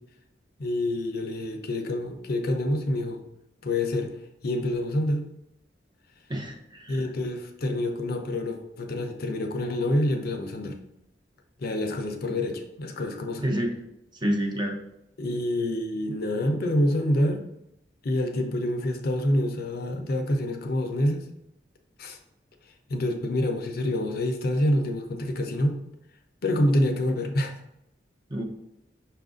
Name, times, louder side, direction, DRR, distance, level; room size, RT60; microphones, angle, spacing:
voice 1, 0.6-3.2 3.6-4.1 4.4-5.3 6.9-10.8 11.6-13.4 15.2-17.4 18.0-21.3 22.0-22.2 22.9-25.8 26.4-27.6, left 1 dB, 55° left, 4 dB, 0.6 m, -27 dB
voice 2, 6.3-7.1 13.4-13.7 14.1-14.8 28.3-28.4, equal, 25° right, 2 dB, 0.6 m, -28 dB
5.7 x 2.4 x 3.8 m, 0.83 s
head